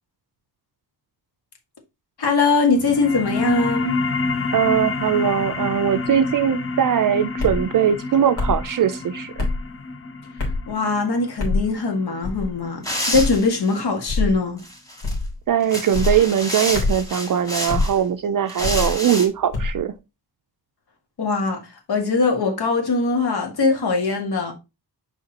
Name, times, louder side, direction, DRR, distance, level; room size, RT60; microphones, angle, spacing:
voice 1, 2.2-4.0 10.7-14.6 21.2-24.5, left 4 dB, 70° left, 1.9 m, -21 dB
sound 1, 2.7-13.8, left 3 dB, 35° left, 0.7 m, -29 dB
voice 2, 4.5-9.5 15.5-19.9, right 9 dB, 55° right, 0.5 m, -20 dB
sound 2, 7.4-7.6 8.4-8.6 9.4-9.6 10.4-10.7 11.4-11.6 12.2-12.5 13.1-13.4 14.1-14.3 15.0-15.3 15.9-16.2 16.7-17.0 17.7-17.9 18.6-18.9 19.5-19.8, left 3 dB, 85° left, 3.3 m, -24 dB
sound 3, 12.8-13.8 14.6-15.1 15.6-18.0 18.5-19.3, equal, 10° left, 1.6 m, -29 dB
6.6 x 5.0 x 2.9 m
wide cardioid pair, 175°, 40 cm